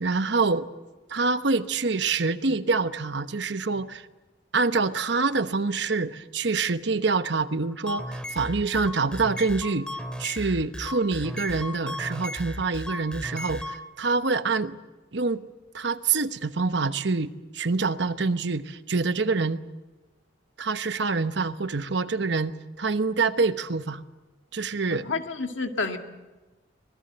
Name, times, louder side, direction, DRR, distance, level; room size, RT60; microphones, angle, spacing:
voice 1, 0.0-0.7 1.1-4.1 4.5-9.9 10.2-14.8 15.1-15.4 15.7-19.6 20.6-24.0 24.5-25.1, right 4 dB, 65° right, 11 dB, 1.0 m, -26 dB
sound 1, 7.7-13.8, left 1 dB, 5° left, 2.2 m, -35 dB
voice 2, 24.9-26.0, left 4 dB, 80° left, 5 dB, 2.1 m, -29 dB
25.5 x 19.5 x 8.0 m, 1.2 s
head